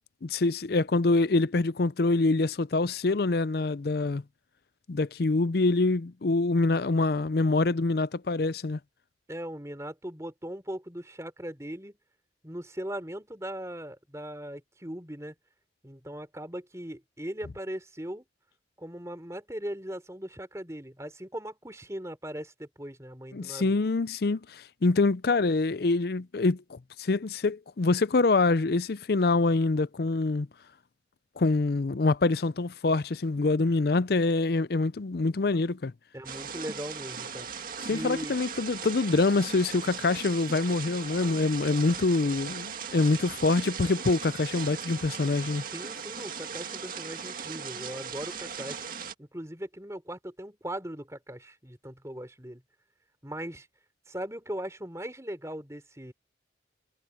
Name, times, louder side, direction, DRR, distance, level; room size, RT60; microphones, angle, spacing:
voice 1, 0.2-4.2 4.9-8.8 23.3-30.5 31.4-35.9 37.8-45.6, left 3 dB, 55° left, 0.5 m, -25 dB
voice 2, 9.3-12.0 12.4-15.3 15.8-18.2 18.8-23.7 36.1-37.5 37.9-38.4 45.5-48.9 49.2-52.6 53.2-53.7 54.1-56.1, right 1 dB, 15° right, 3.6 m, -39 dB
sound 1, 36.3-49.1, right 6 dB, 45° right, 2.1 m, -38 dB
head